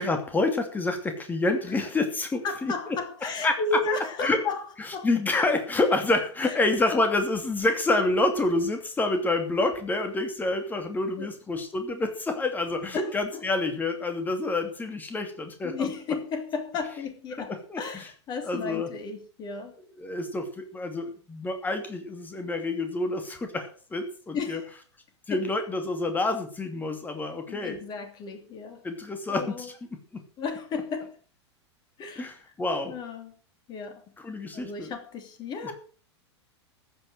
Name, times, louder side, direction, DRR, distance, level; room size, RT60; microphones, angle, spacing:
voice 1, 0.0-3.0 3.2-3.6 4.2-4.4 4.8-15.9 17.4-18.1 18.4-18.9 20.0-24.6 25.3-27.8 28.8-30.2 32.2-33.0 34.2-34.9 35.6-35.7, left 2 dB, 10° left, 2.7 m, -28 dB
voice 2, 2.4-4.6 4.9-5.1 6.4-6.6 6.9-7.0 11.2-11.3 12.9-13.4 15.6-19.7 24.3-24.6 25.3-25.4 27.5-28.8 29.3-29.7 30.4-31.2 32.0-32.3 32.8-33.4 33.7-34.0 34.5-35.7, left 4 dB, 30° left, 2.9 m, -33 dB
15.0 x 8.3 x 6.5 m
figure-of-eight pair, 95°, 15 cm